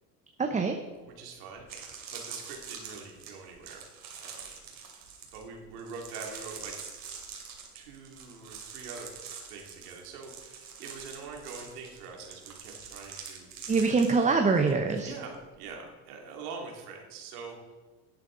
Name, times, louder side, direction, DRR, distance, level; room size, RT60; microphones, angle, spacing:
voice 1, 0.4-0.8 13.7-15.1, right 4 dB, 15° right, 5 dB, 0.8 m, -24 dB
voice 2, 1.0-3.8 4.1-4.5 5.3-6.7 7.7-13.7 15.0-17.6, right 4 dB, 80° right, 1 dB, 2.5 m, -44 dB
sound 1, 1.6-15.1 15.3-15.7, right 6 dB, 45° right, 2.7 m, -45 dB
11.5 x 8.4 x 3.9 m, 1.3 s
supercardioid pair, 95°, 45 cm